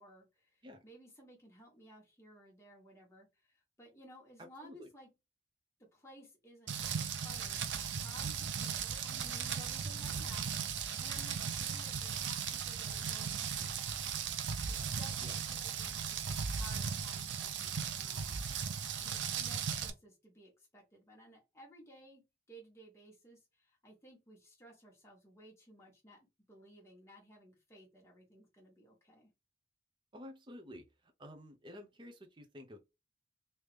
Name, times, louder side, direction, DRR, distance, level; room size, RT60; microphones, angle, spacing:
voice 1, 0.0-5.1 5.9-10.5 11.0-14.2 14.7-18.4 19.0-22.2 22.5-26.2 26.5-29.3, equal, 15° left, 1.5 m, -57 dB
Rain, 6.7-19.9, right 7 dB, 85° right, 0.6 m, -37 dB
voice 2, 30.1-30.9 31.2-32.8, left 1 dB, 25° right, 0.6 m, -51 dB
3.2 x 2.8 x 3.3 m
head